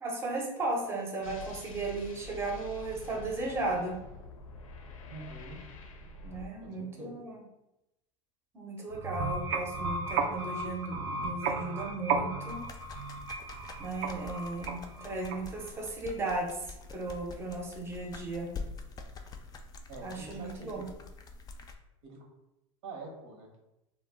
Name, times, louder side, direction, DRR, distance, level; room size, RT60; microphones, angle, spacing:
voice 1, 0.0-4.0 6.2-7.4 8.5-12.6 13.8-18.5 20.0-20.9, right 2 dB, 15° right, 0 dB, 0.6 m, -36 dB
sound 1, 1.2-6.5, left 4 dB, 85° left, 0.5 m, -46 dB
voice 2, 5.1-5.6 6.6-7.1 19.9-20.9 22.0-22.2 22.8-23.5, right 3 dB, 75° right, 0 dB, 0.9 m, -45 dB
sound 2, 8.9-15.7, right 4 dB, 55° right, 0.4 m, -34 dB
sound 3, 12.5-21.8, left 4 dB, 25° left, 0.3 m, -46 dB
2.3 x 2.1 x 3.5 m, 0.89 s
hypercardioid pair, 95°, 17 cm